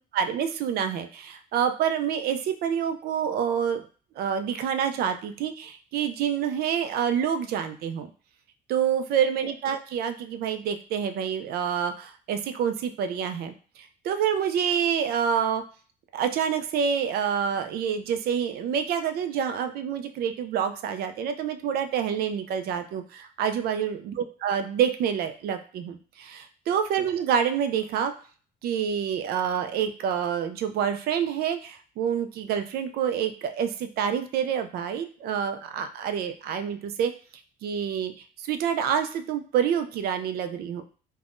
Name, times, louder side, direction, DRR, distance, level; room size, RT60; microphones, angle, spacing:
voice 1, 0.1-3.8 4.2-8.1 8.7-15.6 16.1-28.1 28.6-37.1 37.6-38.1 38.4-40.8, right 8 dB, 65° right, 8 dB, 0.4 m, -27 dB
3.4 x 2.1 x 2.5 m, 0.40 s
cardioid pair, 110°, 17 cm